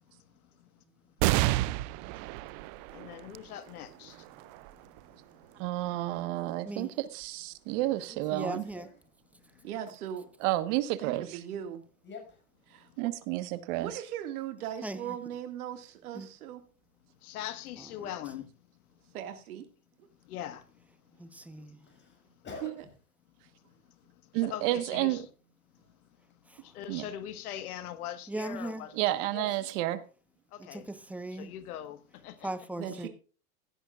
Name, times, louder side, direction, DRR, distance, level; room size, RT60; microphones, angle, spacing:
sound 1, 1.2-8.1 8.7-8.8 9.9-10.5, right 17 dB, 35° right, 0.4 m, -34 dB
voice 1, 2.9-4.2 17.2-18.5 20.3-20.6 24.3-25.2 26.6-28.9 29.2-29.3 30.5-30.9 31.3-32.5, left 11 dB, 75° left, 1.6 m, -41 dB
voice 2, 5.6-6.9 7.1-8.6 10.4-11.4 13.0-14.0 24.3-25.2 26.9-27.0 29.0-30.0, right 16 dB, 50° right, 1.5 m, -30 dB
voice 3, 6.6-7.0 8.3-8.9 14.8-15.2 16.1-16.3 17.8-18.1 21.2-21.9 26.4-26.8 28.3-28.9 30.7-31.5 32.4-33.1, right 2 dB, 5° right, 1.1 m, -39 dB
voice 4, 7.9-8.9 12.0-12.4 21.9-22.7 29.3-30.0, left 4 dB, 25° left, 6.1 m, -46 dB
voice 5, 9.6-10.3 11.0-11.8 12.7-13.1 13.8-16.6 19.1-19.7 22.6-22.7 32.8-33.1, right 10 dB, 70° right, 2.2 m, -39 dB
16.0 x 11.0 x 2.5 m
hypercardioid pair, 125°, 45 cm